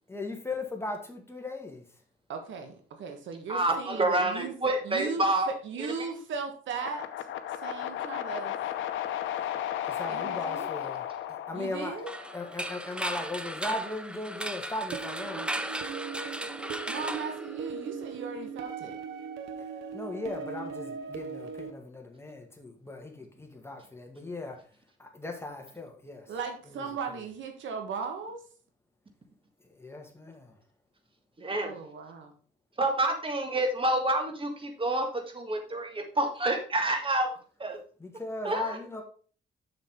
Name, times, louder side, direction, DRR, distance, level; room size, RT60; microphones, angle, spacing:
voice 1, 0.1-1.8 9.9-12.1 12.3-15.5 19.9-24.6 25.0-26.3 26.7-26.8 29.8-30.6 38.0-39.0, left 2 dB, 10° left, 2 dB, 1.8 m, -38 dB
voice 2, 2.3-4.5 4.8-7.2 7.6-8.6 10.1-10.7 11.5-12.1 16.9-19.0 26.3-28.4 31.5-32.4, right 5 dB, 70° right, 5 dB, 1.5 m, -37 dB
voice 3, 3.5-5.5 31.4-31.7 32.8-37.8 38.4-38.6, right 1 dB, 25° right, 5 dB, 1.9 m, -28 dB
sound 1, 6.7-12.9, left 11 dB, 80° left, 0.7 m, -35 dB
sound 2, 12.1-18.0, right 1 dB, 5° right, 0.5 m, -36 dB
sound 3, 14.9-21.7, right 6 dB, 90° right, 0.8 m, -39 dB
7.0 x 6.5 x 3.7 m, 0.42 s
cardioid pair, 90°, 20 cm